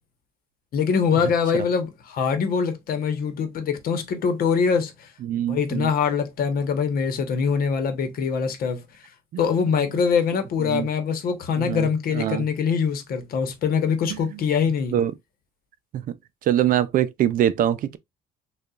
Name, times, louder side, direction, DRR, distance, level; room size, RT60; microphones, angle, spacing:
voice 1, 0.7-5.1 5.4-8.8 9.4-15.0, left 6 dB, 60° left, 1.0 m, -23 dB
voice 2, 5.2-5.9 9.3-9.4 10.6-10.9 11.6-11.9 12.1-12.4 14.9-15.1 16.1-16.2 16.5-18.0, right 11 dB, 55° right, 0.4 m, -23 dB
6.5 x 2.4 x 2.3 m
cardioid pair, 110°, 17 cm